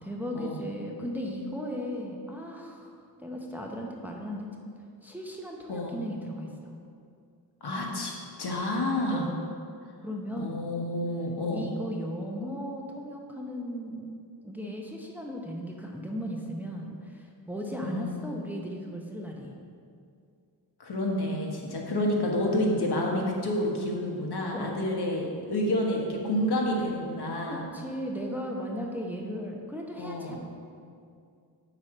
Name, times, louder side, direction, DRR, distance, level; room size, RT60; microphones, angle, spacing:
voice 1, 0.0-2.9 3.2-4.5 5.0-6.8 9.1-9.5 10.0-10.7 11.5-14.1 14.4-19.5 24.5-24.8 27.5-30.5, equal, 5° right, 0 dB, 0.8 m, -36 dB
voice 2, 7.6-8.1 8.4-9.3 10.4-11.7 17.8-18.3 20.8-27.7 30.0-30.4, left 1 dB, 65° left, -1 dB, 1.3 m, -29 dB
5.7 x 4.8 x 6.6 m, 2.4 s
wide cardioid pair, 90°, 42 cm